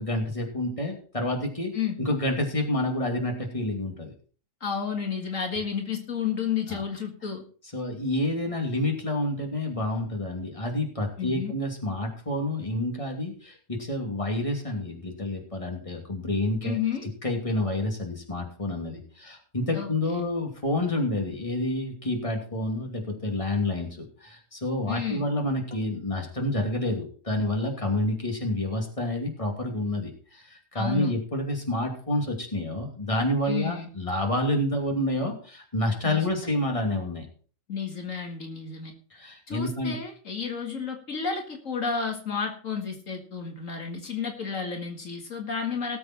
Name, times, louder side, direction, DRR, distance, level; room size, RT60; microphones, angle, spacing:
voice 1, 0.0-1.7 2.0-4.1 6.7-6.8 7.7-16.8 17.2-37.3 39.1-40.0, left 1 dB, 25° left, 2 dB, 2.7 m, -28 dB
voice 2, 4.6-7.4 11.2-11.5 16.6-17.1 19.7-20.3 24.9-25.3 30.7-31.1 33.5-33.9 36.0-36.3 37.7-38.9 39.5-46.0, left 6 dB, 75° left, 3 dB, 2.3 m, -31 dB
18.0 x 7.7 x 4.4 m, 0.40 s
omnidirectional pair, 1.4 m